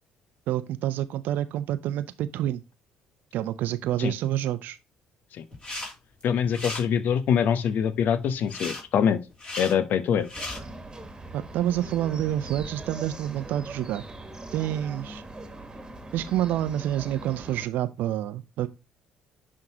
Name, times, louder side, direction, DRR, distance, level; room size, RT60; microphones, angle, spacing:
voice 1, 0.5-2.6 3.3-4.8 11.3-14.0 14.5-15.2 16.1-18.7, right 12 dB, 65° right, 0.6 m, -28 dB
sound 1, 5.5-5.9 6.2-6.8 8.5-8.8 9.3-9.7 10.2-10.6, left 2 dB, 30° left, 3.8 m, -35 dB
voice 2, 6.2-9.2 9.6-10.3, left 8 dB, 60° left, 0.9 m, -24 dB
sound 2, 10.3-17.7, right 2 dB, 20° right, 1.7 m, -41 dB
10.5 x 3.7 x 2.9 m
hypercardioid pair, 55°, 3 cm